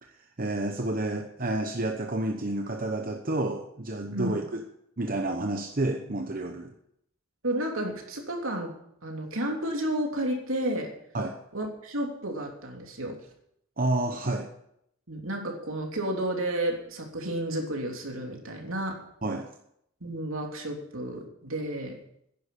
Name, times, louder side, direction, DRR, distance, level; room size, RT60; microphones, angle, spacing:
voice 1, 0.0-4.6 5.0-6.7 11.1-11.4 13.8-14.5 19.2-19.5, right 2 dB, 40° right, 4 dB, 0.9 m, -30 dB
voice 2, 7.4-8.7 9.0-10.9 11.5-13.2 15.1-19.0 20.0-22.0, right 1 dB, 70° right, 1 dB, 3.2 m, -31 dB
11.0 x 10.5 x 8.4 m, 0.74 s
head